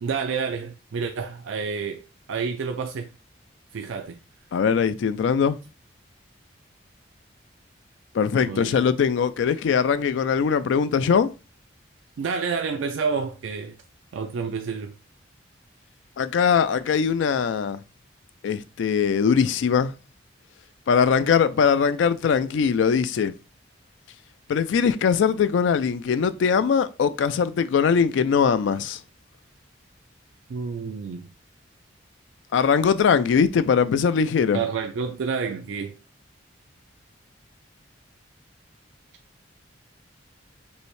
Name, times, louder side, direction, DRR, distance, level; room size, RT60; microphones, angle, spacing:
voice 1, 0.0-2.0 2.3-3.1 3.7-4.2 8.4-8.7 12.2-13.8 14.1-14.9 30.5-31.3 34.5-36.0, right 5 dB, 80° right, 0.4 m, -29 dB
voice 2, 4.5-5.6 8.1-11.3 16.2-17.8 18.4-19.9 20.9-23.3 24.5-29.0 32.5-34.6, left 6 dB, 70° left, 0.3 m, -21 dB
5.4 x 2.0 x 3.1 m
head